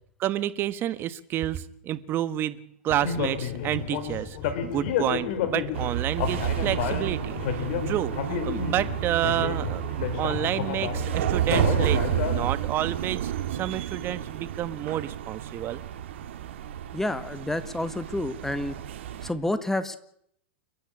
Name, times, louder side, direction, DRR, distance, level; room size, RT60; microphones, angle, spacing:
voice 1, 0.2-15.8, right 12 dB, 35° right, 14 dB, 1.5 m, -30 dB
sound 1, 2.9-12.5, left 7 dB, 60° left, 3.8 m, -31 dB
sound 2, 5.7-19.3, right 11 dB, 70° right, 2.5 m, -31 dB
voice 2, 16.9-18.8 19.2-20.0, left 1 dB, 5° left, 12 dB, 1.7 m, -29 dB
29.5 x 10.5 x 8.6 m, 0.71 s
hypercardioid pair, 120°, 7 cm